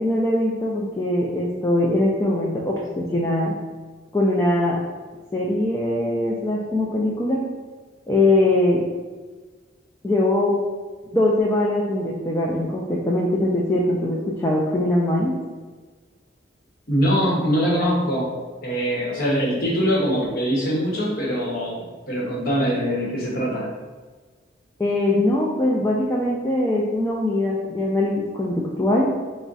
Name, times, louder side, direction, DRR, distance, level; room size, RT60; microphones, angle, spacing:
voice 1, 0.0-3.5 4.1-4.8 5.3-7.4 8.1-8.8 10.0-10.5 11.1-15.3 24.8-29.1, left 1 dB, 15° left, -4 dB, 0.3 m, -21 dB
voice 2, 16.9-23.7, equal, 50° left, -4 dB, 0.9 m, -23 dB
3.5 x 2.1 x 4.0 m, 1.4 s
head